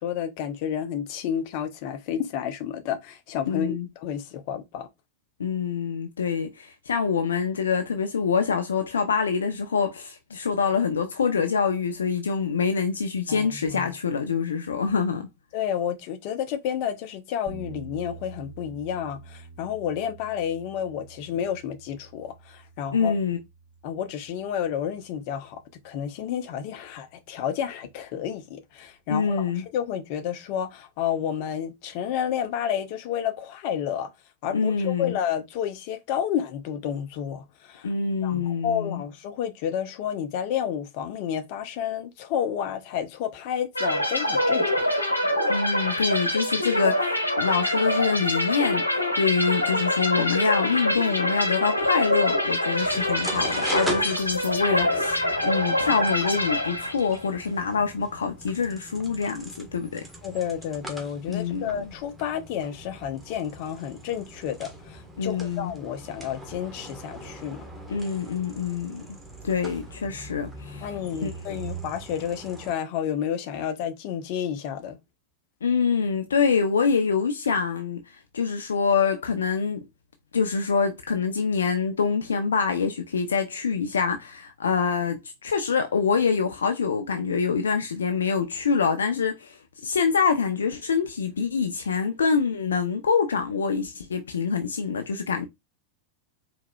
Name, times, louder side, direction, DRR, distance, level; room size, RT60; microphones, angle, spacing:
voice 1, 0.0-4.9 13.3-13.8 15.5-23.1 23.8-25.6 25.8-34.1 34.4-37.9 38.2-44.8 60.2-67.6 70.8-75.0, left 9 dB, 45° left, 0.9 m, -30 dB
voice 2, 3.5-3.9 5.4-15.3 22.9-23.4 29.1-29.6 34.5-35.2 37.8-39.0 45.4-60.1 61.3-61.9 65.2-65.7 67.9-69.2 69.4-71.3 75.6-79.9 80.3-95.5, left 5 dB, 70° left, 0.6 m, -25 dB
sound 1, 17.5-27.5, right 3 dB, 30° right, 2.5 m, -48 dB
sound 2, 43.8-57.3, left 1 dB, 85° left, 1.1 m, -25 dB
sound 3, 52.8-72.7, right 2 dB, 5° right, 1.4 m, -40 dB
4.7 x 4.0 x 2.3 m
figure-of-eight pair, 90°, 0 cm